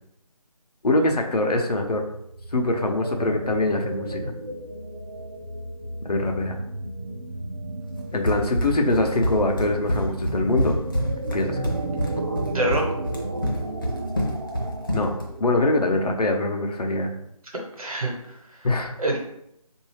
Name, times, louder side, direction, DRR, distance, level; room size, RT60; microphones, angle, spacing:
voice 1, 0.8-2.0 2.5-4.3 6.0-6.6 8.1-10.8 11.3-11.7 14.9-15.1 15.4-17.1 18.6-18.9, left 2 dB, 85° left, 3 dB, 0.8 m, -23 dB
sound 1, 1.9-16.0, right 2 dB, 40° right, 0.4 m, -34 dB
Run, 8.3-15.3, equal, 35° left, 0.5 m, -27 dB
voice 2, 12.4-12.8 17.8-18.7 19.0-19.2, right 1 dB, 65° right, 0 dB, 1.1 m, -26 dB
3.6 x 2.7 x 3.1 m, 0.76 s
figure-of-eight pair, 170°, 20 cm